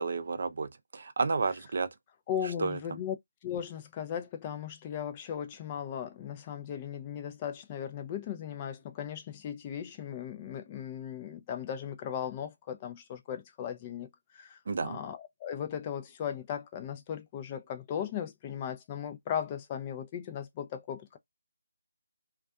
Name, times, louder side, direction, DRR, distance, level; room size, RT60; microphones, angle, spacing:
voice 1, 0.0-1.9 2.6-2.8 14.7-15.0, right 4 dB, 50° right, 0.4 m, -31 dB
voice 2, 2.3-3.2 3.4-14.1 14.3-21.2, left 9 dB, 20° left, 0.4 m, -37 dB
2.5 x 2.3 x 2.3 m
figure-of-eight pair, 155°, 0 cm